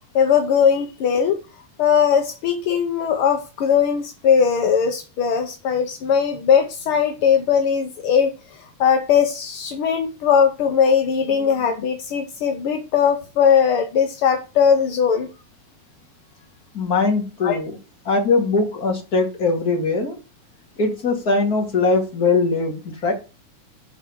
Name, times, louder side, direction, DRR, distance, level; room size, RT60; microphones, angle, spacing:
voice 1, 0.1-1.4 1.8-8.3 8.6-15.3 17.4-17.6, left 7 dB, 65° left, 5 dB, 1.4 m, -19 dB
voice 2, 16.7-17.7 18.0-20.1 20.8-23.1, left 3 dB, 30° left, 2 dB, 2.8 m, -21 dB
11.0 x 4.8 x 6.3 m, 0.31 s
omnidirectional pair, 3.7 m